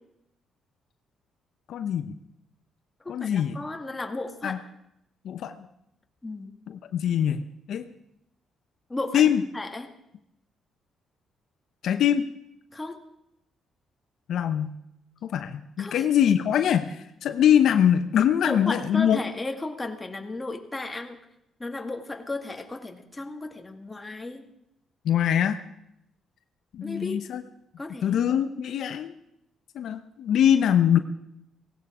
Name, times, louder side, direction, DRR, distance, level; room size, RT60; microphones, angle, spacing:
voice 1, 1.7-2.1 3.1-3.6 4.4-4.6 5.2-5.5 6.7-7.4 7.7-7.8 9.1-9.4 11.8-12.2 14.3-14.7 15.2-19.2 25.0-25.6 26.7-27.4 28.0-29.1 29.7-31.0, left 9 dB, 70° left, 9 dB, 0.8 m, -23 dB
voice 2, 3.1-4.6 6.2-6.5 8.9-9.3 9.5-9.9 12.7-13.0 15.8-16.0 18.4-21.2 21.6-24.5 26.8-27.2 27.8-28.2, left 2 dB, 15° left, 4 dB, 2.0 m, -34 dB
17.5 x 16.5 x 5.0 m, 0.80 s
cardioid pair, 90°, 0 cm